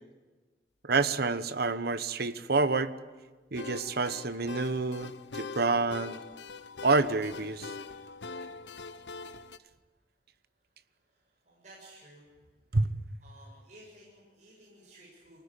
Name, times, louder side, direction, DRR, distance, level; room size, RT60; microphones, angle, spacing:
voice 1, 0.8-2.9 3.5-6.2 6.8-7.7 12.7-12.9, right 3 dB, 60° right, 13 dB, 1.1 m, -28 dB
sound 1, 3.5-9.6, left 4 dB, 75° left, 0.9 m, -43 dB
voice 2, 11.5-12.2 13.2-15.4, right 1 dB, 45° right, -4 dB, 7.0 m, -54 dB
24.5 x 19.0 x 9.9 m, 1.3 s
head